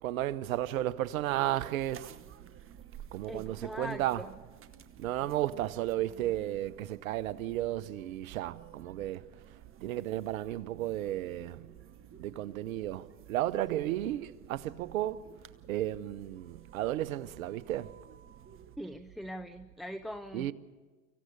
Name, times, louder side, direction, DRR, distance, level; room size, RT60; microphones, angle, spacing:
voice 1, 0.0-2.1 3.1-4.2 5.0-9.2 9.8-11.7 12.2-15.2 15.7-17.9 20.3-20.5, right 14 dB, 75° right, 0.9 m, -33 dB
sound 1, 1.8-18.8, right 9 dB, 30° right, 1.1 m, -54 dB
voice 2, 3.3-4.3 18.8-20.5, equal, ahead, 0.6 m, -41 dB
25.0 x 16.0 x 6.9 m
hypercardioid pair, 90°, 41 cm